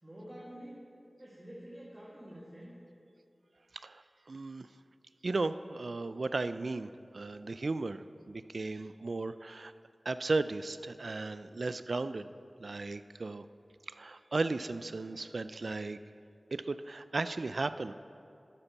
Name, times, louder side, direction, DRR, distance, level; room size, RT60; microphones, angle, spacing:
voice 1, 0.0-0.8 1.2-2.7, equal, 25° right, -6 dB, 1.7 m, -48 dB
voice 2, 4.3-4.7 5.2-9.7 10.1-12.3 12.6-13.5 14.0-16.0 16.5-17.9, right 3 dB, 70° right, 13 dB, 0.3 m, -35 dB
11.5 x 8.9 x 4.1 m, 2.5 s
wide cardioid pair, 50°, 0 cm